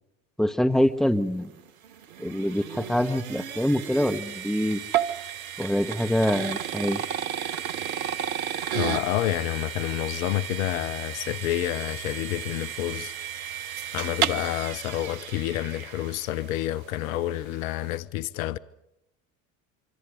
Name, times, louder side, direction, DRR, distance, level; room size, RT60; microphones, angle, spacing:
voice 1, 0.4-1.5 2.2-4.8 5.6-7.0, equal, ahead, 1.5 m, -25 dB
sound 1, 1.5-16.7, right 9 dB, 80° right, 1.1 m, -33 dB
voice 2, 8.7-13.5 13.9-18.6, left 14 dB, 70° left, 0.9 m, -29 dB
26.0 x 25.5 x 5.2 m
hypercardioid pair, 65°, 42 cm